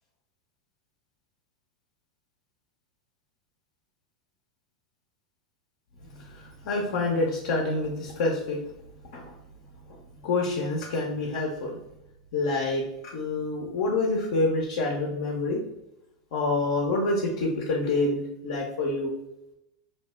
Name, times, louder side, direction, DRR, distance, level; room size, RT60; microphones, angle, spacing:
voice 1, 6.1-8.6 9.1-9.3 9.9-11.8 12.3-15.6 16.3-19.1, left 2 dB, 65° left, -2 dB, 0.6 m, -27 dB
2.7 x 2.1 x 3.3 m, 0.86 s
hypercardioid pair, 100°, 3 cm